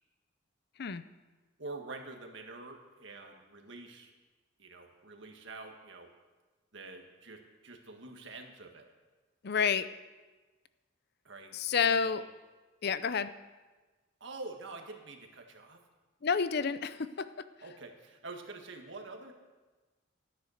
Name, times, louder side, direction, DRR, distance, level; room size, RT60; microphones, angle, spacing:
voice 1, 1.6-4.1 4.6-6.1 6.7-8.9 11.2-12.2 14.2-15.8 17.6-19.3, right 3 dB, 65° right, 3 dB, 1.8 m, -46 dB
voice 2, 9.4-9.9 11.5-12.2 12.8-13.3 16.2-17.4, left 6 dB, 55° left, 13 dB, 0.5 m, -29 dB
13.5 x 9.9 x 6.5 m, 1.2 s
head